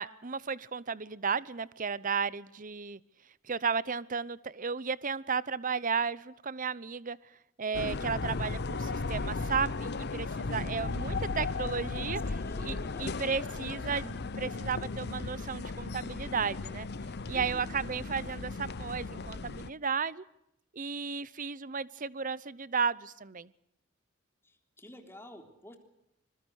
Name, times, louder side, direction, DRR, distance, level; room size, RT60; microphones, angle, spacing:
voice 1, 0.0-3.0 3.4-7.2 7.6-16.9 17.3-20.2 20.7-23.5, right 5 dB, 40° right, 19 dB, 0.9 m, -34 dB
sound 1, 7.7-19.7, left 3 dB, 55° left, 0.8 m, -36 dB
voice 2, 11.3-13.1 17.2-17.6 24.4-25.8, left 1 dB, 10° left, 5 dB, 3.5 m, -51 dB
26.0 x 22.0 x 6.4 m, 0.80 s
head